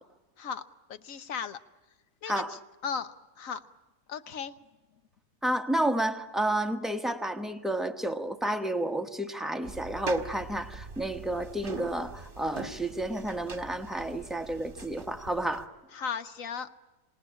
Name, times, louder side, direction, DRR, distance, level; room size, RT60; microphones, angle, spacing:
voice 1, 0.9-1.6 2.2-3.6 4.1-4.5 15.9-16.7, left 6 dB, 65° left, 1.3 m, -36 dB
voice 2, 5.4-15.7, right 1 dB, ahead, 0.9 m, -31 dB
sound 1, 9.6-15.7, right 3 dB, 35° right, 1.9 m, -43 dB
27.0 x 18.5 x 8.7 m
omnidirectional pair, 1.6 m